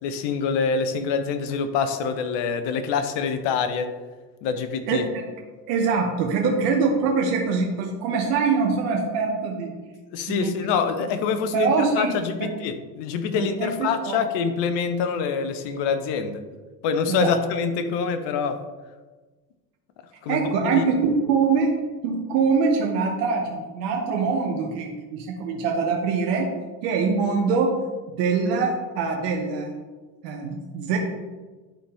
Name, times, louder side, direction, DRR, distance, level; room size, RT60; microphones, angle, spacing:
voice 1, 0.0-3.9 4.4-5.0 10.1-16.4 16.8-18.6 20.2-20.9, left 6 dB, 55° left, 9 dB, 1.0 m, -25 dB
voice 2, 4.9-5.2 5.7-9.7 10.3-10.6 11.5-12.1 12.4-12.5 13.3-14.2 17.1-17.3 20.3-21.8 22.0-26.5 26.8-27.8 28.2-29.7 30.2-31.0, right 5 dB, 70° right, 1 dB, 1.2 m, -23 dB
11.0 x 4.3 x 3.6 m, 1.3 s
hypercardioid pair, 75°, 50 cm